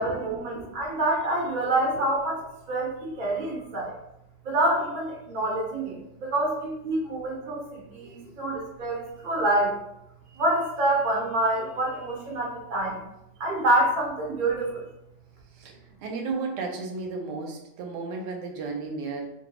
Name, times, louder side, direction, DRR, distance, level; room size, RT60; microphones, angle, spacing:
voice 1, 0.0-2.4 2.7-3.9 4.4-9.8 10.3-13.0 13.4-14.8, right 1 dB, 45° right, -3 dB, 0.6 m, -26 dB
voice 2, 15.5-19.3, right 4 dB, 75° right, 1 dB, 1.1 m, -34 dB
2.9 x 2.6 x 2.9 m, 0.84 s
omnidirectional pair, 1.9 m